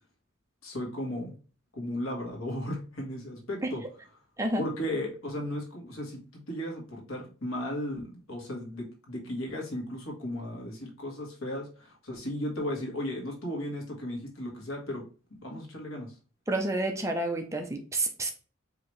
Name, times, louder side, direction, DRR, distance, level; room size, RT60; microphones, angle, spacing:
voice 1, 0.6-1.3 1.7-3.8 4.6-15.0 15.4-16.1, left 1 dB, 80° left, 0 dB, 1.5 m, -35 dB
voice 2, 16.5-18.3, right 2 dB, 15° right, 4 dB, 0.5 m, -29 dB
4.9 x 2.8 x 3.1 m, 0.37 s
head